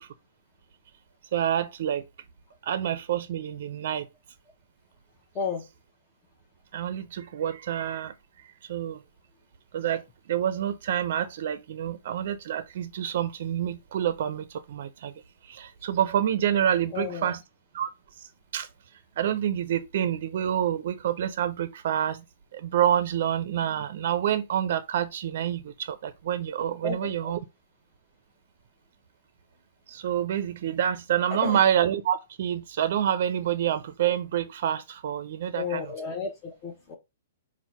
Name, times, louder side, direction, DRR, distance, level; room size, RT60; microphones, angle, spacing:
voice 1, 1.3-2.1 2.6-4.1 6.7-8.1 8.7-9.0 9.7-15.1 15.4-17.4 17.7-17.9 18.5-18.7 19.2-22.2 22.5-27.4 29.9-35.8, right 10 dB, 60° right, 0.4 m, -27 dB
voice 2, 5.3-5.6 16.9-17.3 26.8-27.3 31.3-31.6 35.5-37.0, left 5 dB, 25° left, 0.8 m, -32 dB
4.4 x 2.1 x 4.1 m
hypercardioid pair, 135°, 0 cm